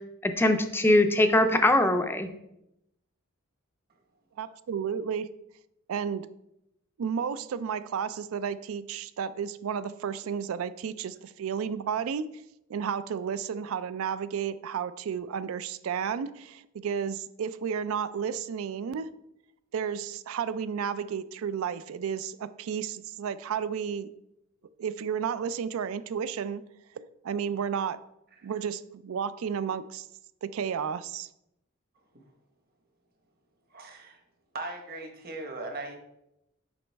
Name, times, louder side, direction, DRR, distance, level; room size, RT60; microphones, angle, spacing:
voice 1, 0.2-2.3, left 1 dB, 10° left, 7 dB, 0.4 m, -22 dB
voice 2, 4.4-5.3 5.9-6.3 7.0-12.3 12.7-19.1 19.7-24.1 24.8-26.6 26.9-28.0 28.4-30.1 30.4-31.3, right 7 dB, 80° right, 14 dB, 0.4 m, -32 dB
voice 3, 33.7-34.2 34.5-36.0, right 2 dB, 45° right, 4 dB, 1.1 m, -38 dB
6.9 x 5.2 x 3.4 m, 0.83 s
head